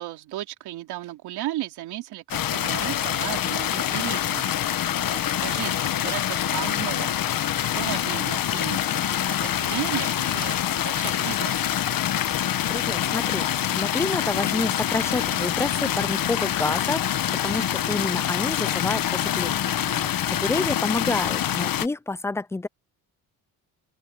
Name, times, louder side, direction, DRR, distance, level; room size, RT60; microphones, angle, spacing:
voice 1, 0.0-11.8 19.8-20.2, right 15 dB, 90° right, 3.5 m, -35 dB
sound 1, 2.3-21.9, left 11 dB, 60° left, 1.4 m, -25 dB
voice 2, 12.7-17.1 17.4-22.7, left 2 dB, 5° left, 0.4 m, -29 dB
open air
cardioid pair, 90°, 38 cm